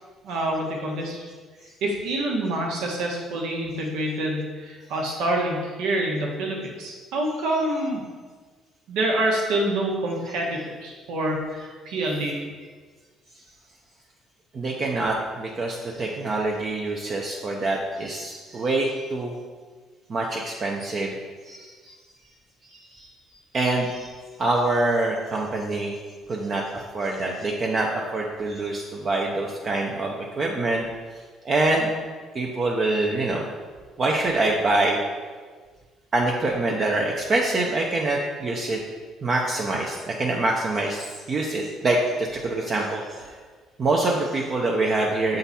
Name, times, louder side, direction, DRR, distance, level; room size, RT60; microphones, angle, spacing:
voice 1, 0.2-1.2 1.8-8.0 8.9-12.3, right 1 dB, 85° right, -1 dB, 1.3 m, -26 dB
voice 2, 14.5-19.3 20.1-21.1 21.5-21.7 22.7-23.1 23.5-24.1 24.4-25.9 26.3-30.9 31.4-31.9 32.3-33.5 34.0-35.0 36.1-38.8 39.2-43.4 43.8-45.4, right 2 dB, 35° right, -1 dB, 0.6 m, -25 dB
6.9 x 3.8 x 4.2 m, 1.5 s
cardioid pair, 145°, 0 cm